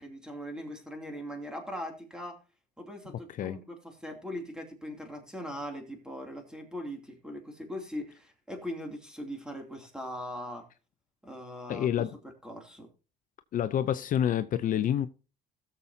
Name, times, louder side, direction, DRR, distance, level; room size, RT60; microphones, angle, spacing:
voice 1, 0.0-2.4 2.8-10.6 11.2-12.1 12.4-12.9, equal, 5° right, 2.7 m, -40 dB
voice 2, 11.7-12.2 13.5-15.1, left 10 dB, 50° left, 0.5 m, -28 dB
16.5 x 7.1 x 2.7 m
cardioid pair, 110°, 17 cm